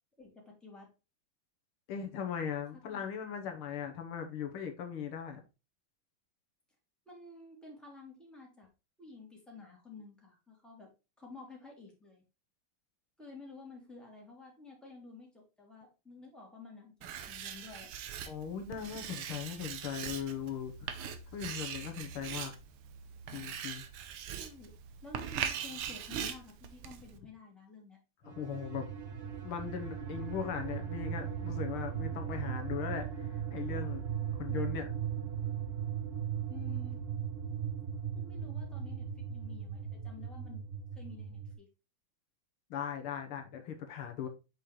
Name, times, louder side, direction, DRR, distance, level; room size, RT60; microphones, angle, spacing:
voice 1, 0.2-0.9 2.9-3.0 7.1-8.7 9.0-10.9 11.2-12.2 13.2-17.9 24.3-24.7 25.0-28.0 36.5-37.0 38.1-40.6 40.9-41.7, left 3 dB, ahead, -2 dB, 2.8 m, -51 dB
voice 2, 1.9-5.4 18.3-21.0 21.3-22.5 23.3-23.8 28.3-28.9 29.4-34.0 34.4-34.9 42.7-44.3, left 7 dB, 80° left, 4 dB, 2.0 m, -39 dB
Writing, 17.0-27.2, right 8 dB, 85° right, 1.7 m, -41 dB
sound 1, 28.2-41.5, right 8 dB, 65° right, 0.6 m, -38 dB
7.4 x 5.3 x 3.1 m, 0.28 s
omnidirectional pair, 2.4 m